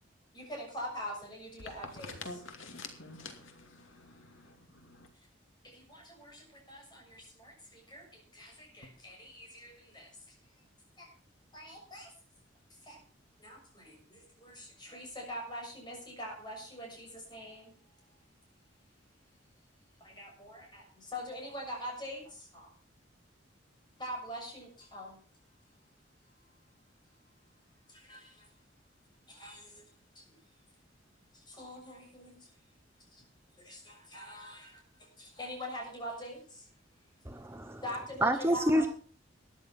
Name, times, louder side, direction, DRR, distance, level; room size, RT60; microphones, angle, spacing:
voice 1, 0.3-2.4 5.7-8.1 8.3-10.1 11.0-11.1 11.5-12.1 12.9-13.0 13.4-17.7 20.0-22.7 24.0-25.2 27.9-28.3 29.3-29.8 30.2-30.3 31.5-32.4 33.6-34.8 35.2-36.6 37.8-38.9, equal, 20° left, 6.5 m, -44 dB
voice 2, 2.2-4.4 4.9-5.1, left 3 dB, 80° left, 2.6 m, -47 dB
voice 3, 37.3-37.8 38.2-38.9, equal, 10° right, 0.8 m, -28 dB
13.5 x 10.5 x 5.9 m
head